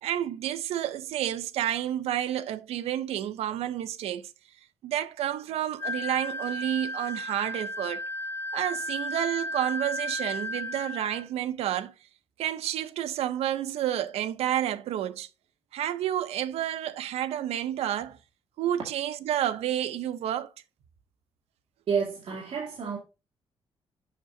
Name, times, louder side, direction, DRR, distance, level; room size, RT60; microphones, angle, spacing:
voice 1, 0.0-4.3 4.8-8.0 8.5-11.9 12.4-15.3 15.7-18.2 18.6-20.5, right 11 dB, 90° right, 0.6 m, -30 dB
Wind instrument woodwind instrument, 5.8-11.3, left 1 dB, 25° left, 1.4 m, -34 dB
voice 2, 21.9-23.0, right 6 dB, 60° right, 2.0 m, -29 dB
7.4 x 5.8 x 2.7 m
cardioid pair, 135°, 10 cm